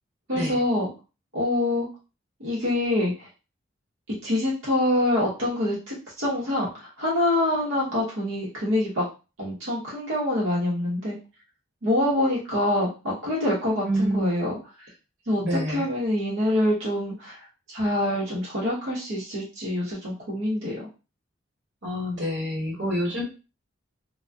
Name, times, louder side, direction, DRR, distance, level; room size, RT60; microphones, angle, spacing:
voice 1, 0.3-0.9 1.3-1.9 2.4-3.3 4.1-9.0 9.4-11.2 11.8-14.6 15.3-17.4 17.7-20.8, left 1 dB, 90° right, -6 dB, 0.9 m, -25 dB
voice 2, 13.8-14.3 15.4-15.9 21.8-23.2, equal, 60° right, -5 dB, 1.2 m, -27 dB
2.5 x 2.2 x 2.2 m, 0.32 s
head